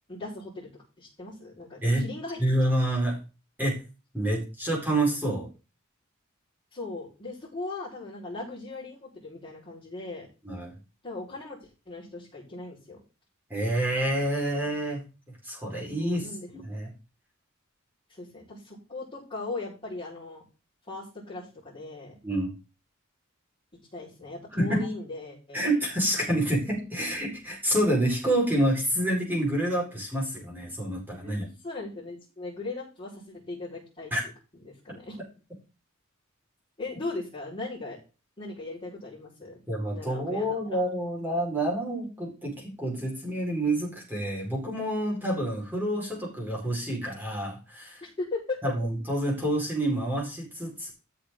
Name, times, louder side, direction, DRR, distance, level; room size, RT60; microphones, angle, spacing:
voice 1, 0.1-0.7 1.0-2.5 6.7-10.3 11.0-13.0 16.0-16.5 18.1-20.4 20.9-22.2 23.9-25.7 31.1-31.4 31.6-34.1 34.6-35.2 36.8-38.0 38.4-39.6 39.9-40.5 48.2-48.6, left 3 dB, 25° left, -11 dB, 4.8 m, -38 dB
voice 2, 2.4-3.2 3.6-3.8 4.1-5.5 10.4-10.7 13.5-15.0 15.4-16.3 16.5-16.9 22.2-22.5 24.6-24.9 25.5-31.5 34.1-34.2 39.7-48.0 48.6-50.9, right 1 dB, 10° right, -3 dB, 4.8 m, -28 dB
13.5 x 6.5 x 3.9 m, 0.32 s
head